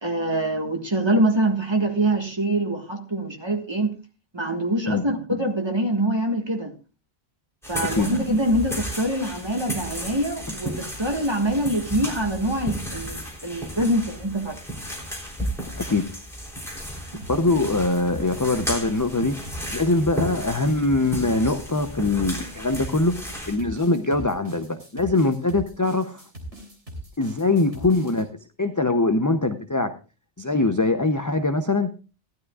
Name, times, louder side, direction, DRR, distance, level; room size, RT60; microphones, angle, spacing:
voice 1, 0.0-3.9 4.3-6.7 7.7-14.6 17.1-17.2, right 1 dB, 25° right, 1.7 m, -24 dB
sound 1, 7.6-23.6, equal, ahead, 3.6 m, -34 dB
sound 2, 17.2-28.2, right 1 dB, 75° right, 3.7 m, -40 dB
voice 2, 17.3-19.4 19.7-26.2 27.2-28.3 28.6-30.0 30.4-31.9, left 2 dB, 20° left, 0.6 m, -22 dB
16.5 x 12.5 x 2.4 m
omnidirectional pair, 1.2 m